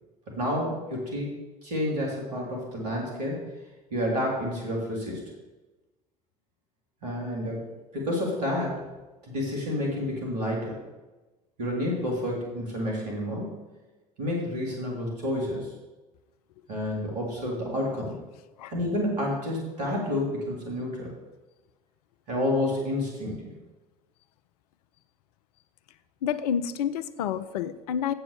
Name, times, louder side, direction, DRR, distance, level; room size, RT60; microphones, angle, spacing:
voice 1, 0.3-1.3 1.6-3.4 3.9-5.2 7.0-7.6 7.9-8.8 9.2-10.8 11.6-13.6 14.2-15.7 16.7-18.1 18.7-21.1 22.3-23.5, left 1 dB, 80° right, -2 dB, 3.3 m, -29 dB
voice 2, 26.2-28.1, left 8 dB, 70° left, 14 dB, 0.6 m, -29 dB
8.0 x 6.8 x 6.9 m, 1.1 s
figure-of-eight pair, 60°, 20 cm